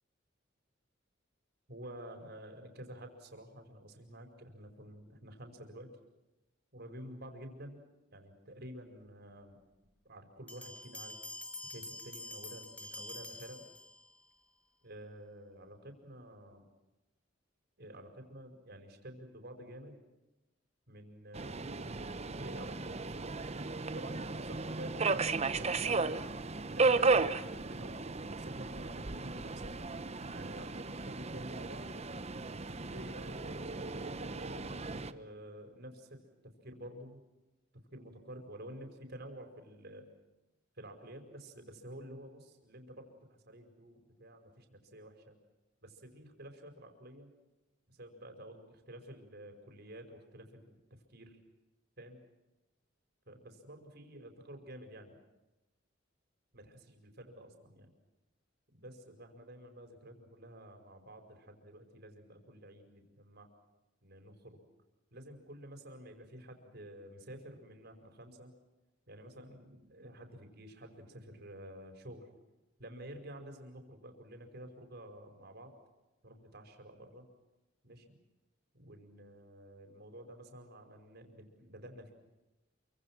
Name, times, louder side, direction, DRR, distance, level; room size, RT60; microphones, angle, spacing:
voice 1, 1.7-5.9 6.7-7.8 8.1-9.6 10.0-13.6 14.8-16.7 17.8-20.0 20.9-23.0 23.8-26.2 26.7-29.8 30.3-31.9 32.7-34.7 35.1-36.2 36.6-37.2 37.9-40.1 40.8-45.4 45.8-47.3 47.9-50.8 51.1-51.4 52.0-52.2 53.3-55.2 56.5-57.9 58.7-63.5 64.0-64.7 65.1-68.5 69.1-72.3 72.8-75.8 76.2-77.3 77.8-78.2 78.7-82.1, right 1 dB, 55° right, 5 dB, 5.2 m, -50 dB
Bell, 10.5-14.3, left 1 dB, 5° left, 2.2 m, -46 dB
Subway metro underground, 21.3-35.1, right 3 dB, 35° right, 1.0 m, -35 dB
28.0 x 25.0 x 6.2 m, 1.0 s
head